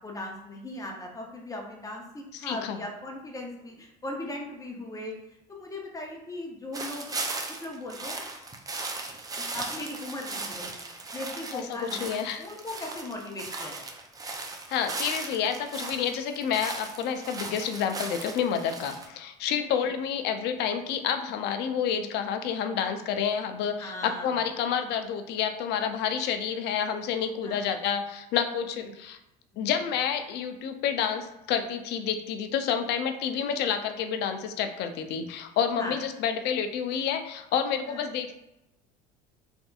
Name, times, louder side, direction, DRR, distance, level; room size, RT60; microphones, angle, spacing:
voice 1, 0.0-5.1 5.5-7.2 7.6-8.3 9.4-10.8 11.1-12.0 12.4-13.9 19.7-19.9 23.8-24.4 27.4-27.6 28.7-28.9 29.5-29.8 35.8-36.0 37.9-38.1, left 1 dB, 15° left, 0 dB, 0.7 m, -38 dB
voice 2, 2.3-2.8 11.5-12.4 14.7-29.2 29.6-38.3, left 8 dB, 60° left, 7 dB, 0.5 m, -29 dB
sound 1, 6.7-19.1, right 3 dB, 20° right, 0.4 m, -37 dB
3.4 x 2.6 x 2.3 m, 0.91 s
supercardioid pair, 90°, 20 cm